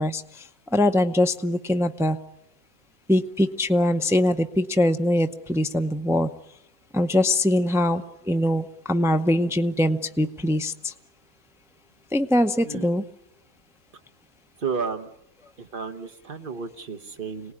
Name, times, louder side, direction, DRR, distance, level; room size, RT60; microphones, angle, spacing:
voice 1, 0.0-2.2 3.1-6.3 6.9-10.9 12.1-13.0, left 1 dB, 5° right, 7 dB, 0.5 m, -22 dB
voice 2, 14.6-15.1 15.6-17.5, right 5 dB, 40° right, 8 dB, 1.3 m, -32 dB
26.0 x 18.5 x 9.9 m, 0.83 s
omnidirectional pair, 1.5 m